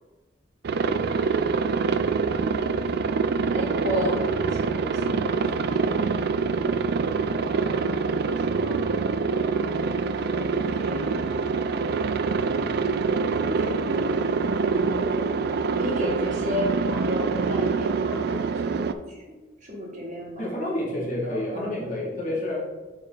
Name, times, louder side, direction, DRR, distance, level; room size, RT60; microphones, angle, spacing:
Aircraft, 0.6-18.9, right 4 dB, 60° right, 0.3 m, -25 dB
voice 1, 3.5-6.1 7.4-9.0 10.2-11.5 13.2-14.1 15.7-20.6 21.2-22.2, left 1 dB, 40° right, -3 dB, 1.8 m, -34 dB
voice 2, 20.4-22.6, left 1 dB, 45° left, -5 dB, 1.9 m, -29 dB
7.0 x 4.4 x 3.9 m, 1.2 s
head